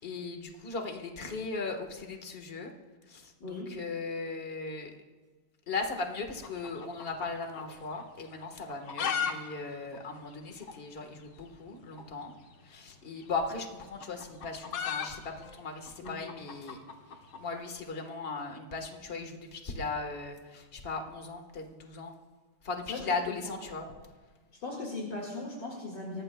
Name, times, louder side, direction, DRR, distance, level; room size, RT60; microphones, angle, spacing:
voice 1, 0.0-2.7 3.1-4.9 5.7-12.3 12.7-15.2 15.6-16.8 17.4-22.1 22.6-23.8, left 4 dB, 30° left, 4 dB, 1.5 m, -37 dB
voice 2, 3.4-3.7 16.0-16.1 22.9-23.5 23.8-23.9 24.6-26.2, left 2 dB, 60° left, -2 dB, 2.8 m, -38 dB
sound 1, 6.4-7.7 8.0-8.1 8.6-9.3 9.6-9.7 9.9-10.0 10.6-10.7 11.9-12.1 13.2-17.4, left 7 dB, 80° left, 2.0 m, -35 dB
24.5 x 18.0 x 2.3 m, 1.4 s
omnidirectional pair, 2.2 m